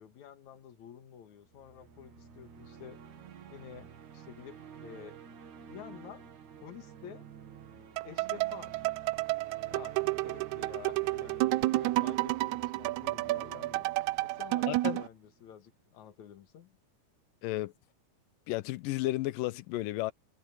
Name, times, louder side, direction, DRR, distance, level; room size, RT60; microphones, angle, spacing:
voice 1, 0.0-3.0 3.5-5.2 5.7-6.3 6.6-7.3 8.0-8.9 9.7-13.9 14.2-16.7, left 9 dB, 65° left, 2.8 m, -50 dB
sound 1, 1.4-15.6, right 7 dB, 65° right, 3.3 m, -51 dB
sound 2, 8.0-15.1, right 19 dB, 90° right, 1.6 m, -31 dB
voice 2, 14.7-15.0 17.4-17.7 18.5-20.1, left 17 dB, 85° left, 2.3 m, -33 dB
omnidirectional pair, 3.9 m